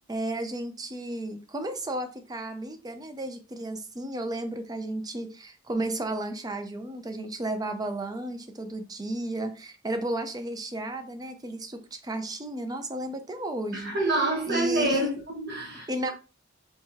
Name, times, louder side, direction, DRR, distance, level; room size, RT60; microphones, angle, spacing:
voice 1, 0.1-13.9 14.5-15.1 15.9-16.1, right 1 dB, 20° right, 0.5 m, -33 dB
voice 2, 13.7-16.1, right 1 dB, 55° right, 1.1 m, -27 dB
4.6 x 2.3 x 2.8 m
head